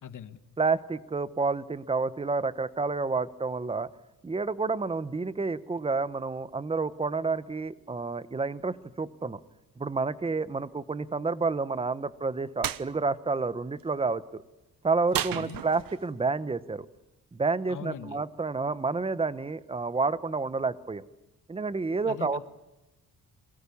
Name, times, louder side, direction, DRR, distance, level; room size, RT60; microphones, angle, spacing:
voice 1, 0.0-0.4 15.1-15.6 17.7-18.2 22.1-22.4, left 8 dB, 55° left, 11 dB, 1.8 m, -41 dB
voice 2, 0.6-3.9 4.2-9.4 9.8-14.4 14.8-16.9 17.3-21.0 21.5-22.4, right 4 dB, 15° right, 15 dB, 0.9 m, -29 dB
sound 1, 12.6-12.9 15.1-16.1, right 11 dB, 70° right, 1.1 m, -32 dB
29.5 x 22.0 x 7.1 m, 0.97 s
wide cardioid pair, 150°, 36 cm